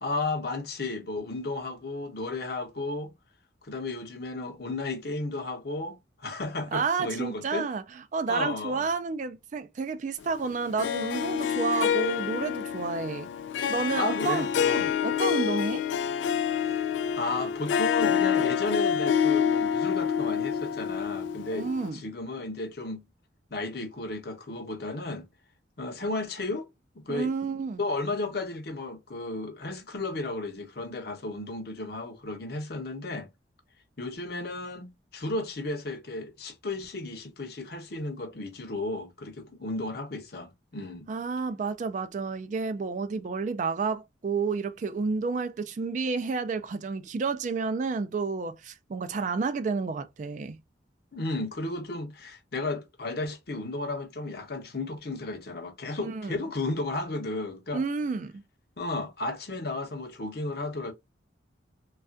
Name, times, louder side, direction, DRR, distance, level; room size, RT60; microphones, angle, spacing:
voice 1, 0.0-3.1 3.6-7.7 8.3-8.9 14.0-14.9 16.5-23.0 23.5-25.3 25.8-26.7 27.0-27.3 27.8-33.3 34.0-41.1 51.1-57.8 58.8-60.9, left 2 dB, 55° left, 0.8 m, -34 dB
voice 2, 6.7-7.8 8.1-13.3 13.7-15.8 21.5-22.0 27.1-27.8 41.1-50.6 56.0-56.4 57.7-58.4, right 4 dB, 40° right, 0.3 m, -30 dB
Harp, 10.8-21.9, left 8 dB, 75° left, 0.3 m, -27 dB
3.2 x 2.3 x 2.5 m
head